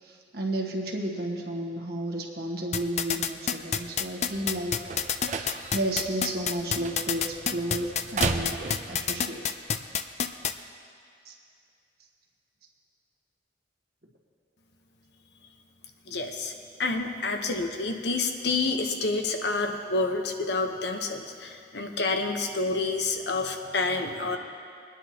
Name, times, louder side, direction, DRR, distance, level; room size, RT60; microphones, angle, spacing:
voice 1, 0.0-4.8 5.2-8.6 8.9-9.5 11.2-11.3 16.1-16.2, right 1 dB, 55° right, 0 dB, 1.4 m, -32 dB
sound 1, 2.7-10.5, left 8 dB, 35° left, 0.4 m, -27 dB
sound 2, 4.3-9.3, right 3 dB, 40° right, 0.6 m, -35 dB
voice 2, 16.1-16.5 16.8-24.4, left 3 dB, 70° left, 4 dB, 1.0 m, -28 dB
22.5 x 10.0 x 2.9 m, 2.3 s
head